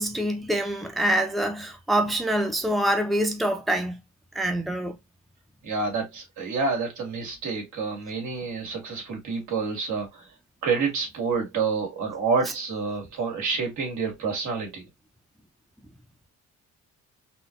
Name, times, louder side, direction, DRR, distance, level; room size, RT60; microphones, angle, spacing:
voice 1, 0.0-4.0 4.3-4.9, right 1 dB, ahead, 0.6 m, -25 dB
voice 2, 5.6-10.2 10.6-14.8, right 4 dB, 75° right, 2.0 m, -28 dB
4.1 x 2.5 x 2.9 m
cardioid pair, 90°, 30 cm